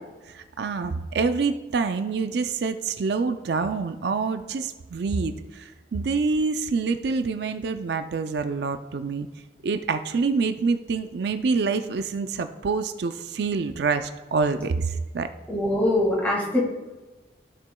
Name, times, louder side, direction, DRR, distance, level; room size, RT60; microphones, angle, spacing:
voice 1, 0.3-9.3 9.6-15.3, right 4 dB, 65° right, 9 dB, 0.4 m, -26 dB
voice 2, 15.5-16.6, left 1 dB, 10° left, -4 dB, 1.9 m, -23 dB
14.5 x 6.6 x 2.3 m, 1.2 s
head